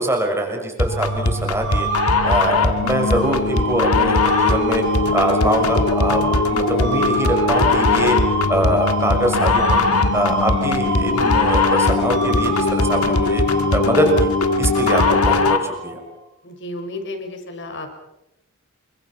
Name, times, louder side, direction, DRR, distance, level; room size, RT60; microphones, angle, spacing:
voice 1, 0.0-1.9 2.2-4.8 5.1-8.2 8.5-9.8 10.1-13.4 13.7-14.3 14.6-16.0, right 1 dB, 10° right, 3 dB, 6.2 m, -23 dB
sound 1, 0.8-15.7, left 3 dB, 85° left, 1.9 m, -20 dB
sound 2, 0.9-16.1, right 2 dB, 55° right, 5.8 m, -26 dB
voice 2, 16.4-17.9, left 2 dB, 55° left, 5 dB, 6.0 m, -32 dB
29.5 x 25.0 x 6.0 m, 0.88 s
head